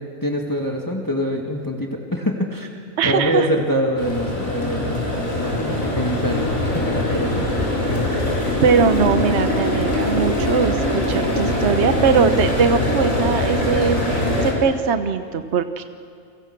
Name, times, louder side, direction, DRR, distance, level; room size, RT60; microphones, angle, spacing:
voice 1, 0.2-2.7 3.0-5.0 5.3-7.5, equal, 15° left, 1 dB, 2.1 m, -24 dB
voice 2, 3.0-3.5 8.6-15.8, right 6 dB, 60° right, 9 dB, 1.2 m, -20 dB
sound 1, 4.0-14.5, left 1 dB, 80° left, 5.6 m, -22 dB
30.0 x 24.0 x 6.1 m, 2.3 s
omnidirectional pair, 1.4 m